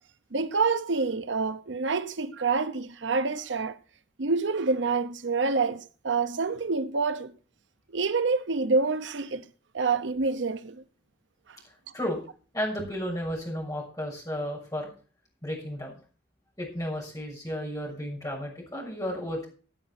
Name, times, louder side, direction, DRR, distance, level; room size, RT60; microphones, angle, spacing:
voice 1, 0.3-3.8 4.2-7.3 7.9-9.4 9.7-10.8, right 4 dB, 75° right, 0.8 m, -27 dB
voice 2, 12.5-14.9 15.4-16.0 16.6-19.5, equal, 20° left, 6.6 m, -33 dB
16.5 x 8.7 x 4.3 m
head